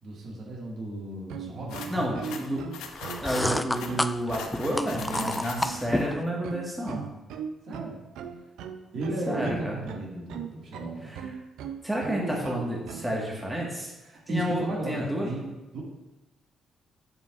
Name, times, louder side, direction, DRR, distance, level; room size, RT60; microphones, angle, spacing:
voice 1, 0.0-2.3 5.3-5.9 7.6-8.0 8.9-11.2 12.1-12.4 14.0-15.8, right 1 dB, 65° right, -3 dB, 2.1 m, -35 dB
sound 1, 1.2-13.1, right 7 dB, 85° right, 0.5 m, -39 dB
sound 2, 1.7-6.0, left 6 dB, 90° left, 0.7 m, -41 dB
voice 2, 1.9-2.7 3.2-7.0 9.3-9.8 11.0-11.2 11.8-13.9 14.3-15.3, equal, 10° right, -3 dB, 1.7 m, -30 dB
sound 3, 2.9-6.2, left 1 dB, 10° left, 0.3 m, -30 dB
7.7 x 6.9 x 2.5 m, 1.0 s
cardioid pair, 90°, 0 cm